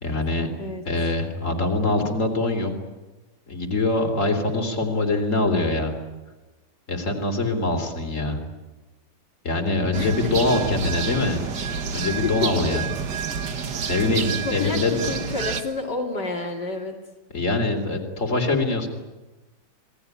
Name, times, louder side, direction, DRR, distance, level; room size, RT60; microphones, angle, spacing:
voice 1, 0.0-0.5 0.9-2.7 3.5-5.9 6.9-8.4 9.4-11.4 11.9-12.9 13.9-14.9 17.3-18.9, left 2 dB, 45° left, 4 dB, 4.0 m, -23 dB
sound 1, 9.9-15.6, right 6 dB, 75° right, 2.1 m, -29 dB
voice 2, 12.0-12.5 13.3-13.9 14.4-17.0, left 4 dB, 75° left, 0 dB, 3.3 m, -30 dB
27.5 x 20.0 x 9.7 m, 1.1 s
omnidirectional pair, 1.9 m